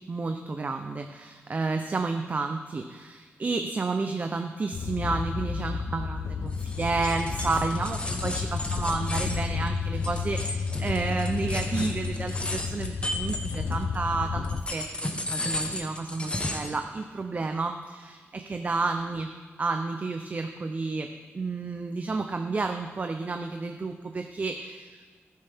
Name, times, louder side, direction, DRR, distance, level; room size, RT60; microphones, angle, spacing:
voice 1, 0.1-19.3 19.6-21.1 21.3-25.0, right 3 dB, 35° right, 5 dB, 0.5 m, -31 dB
sound 1, 4.7-14.6, left 5 dB, 70° left, 0.6 m, -31 dB
sound 2, 6.5-14.0 14.4-16.8, left 1 dB, 25° left, 1.0 m, -34 dB
12.5 x 10.0 x 3.5 m, 1.5 s
wide cardioid pair, 130°, 5 cm